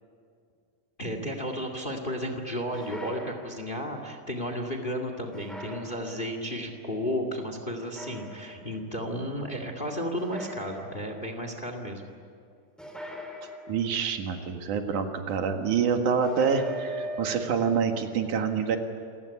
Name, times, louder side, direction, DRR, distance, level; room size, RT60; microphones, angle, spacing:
voice 1, 1.0-12.1 16.1-16.3, equal, 20° left, 5 dB, 1.9 m, -33 dB
sound 1, 2.7-3.9 5.3-6.5 7.8-8.8 10.1-11.3 12.8-14.1 16.2-17.4, equal, ahead, 3.0 m, -41 dB
voice 2, 13.7-18.8, right 6 dB, 80° right, 5 dB, 3.2 m, -26 dB
27.5 x 17.0 x 9.9 m, 2.3 s
omnidirectional pair, 3.5 m